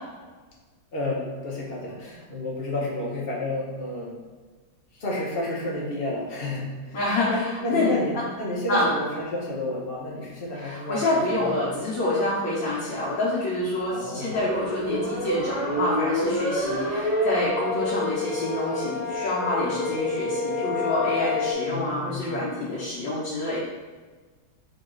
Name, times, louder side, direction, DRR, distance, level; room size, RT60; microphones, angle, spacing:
voice 1, 0.9-4.2 4.9-7.0 7.3-8.1 8.4-11.5 13.9-14.4 21.7-22.4, left 1 dB, 45° left, -3 dB, 0.8 m, -31 dB
voice 2, 6.9-8.2 8.7-9.0 10.5-23.6, left 2 dB, 80° left, -10 dB, 1.6 m, -27 dB
sound 1, 13.8-21.5, left 2 dB, 65° right, 1.5 m, -28 dB
3.9 x 2.9 x 3.7 m, 1.4 s
omnidirectional pair, 2.0 m